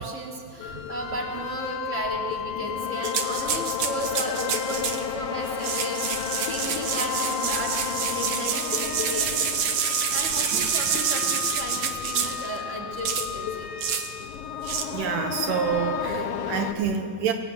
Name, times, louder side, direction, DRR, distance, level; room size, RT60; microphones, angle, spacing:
voice 1, 0.0-9.4 10.1-13.7, right 1 dB, 20° right, -1 dB, 2.9 m, -34 dB
sound 1, 0.6-16.7, left 9 dB, 70° left, 2.4 m, -32 dB
sound 2, 3.0-5.0 5.5-12.5 13.0-13.3 13.8-14.1 14.6-14.8, right 7 dB, 65° right, 1.7 m, -27 dB
voice 2, 14.9-17.3, right 7 dB, 85° right, 6 dB, 1.9 m, -27 dB
23.0 x 17.5 x 9.2 m, 2.3 s
omnidirectional pair, 5.1 m